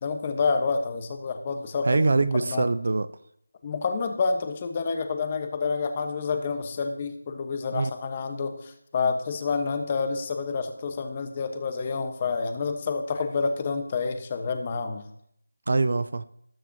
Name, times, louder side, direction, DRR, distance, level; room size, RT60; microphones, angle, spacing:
voice 1, 0.0-2.7 3.6-15.1, left 4 dB, 25° left, 7 dB, 1.1 m, -28 dB
voice 2, 1.8-3.1 7.7-7.9 15.7-16.2, right 3 dB, 55° right, 15 dB, 0.5 m, -23 dB
19.5 x 7.3 x 2.8 m, 0.72 s
figure-of-eight pair, 170°, 0 cm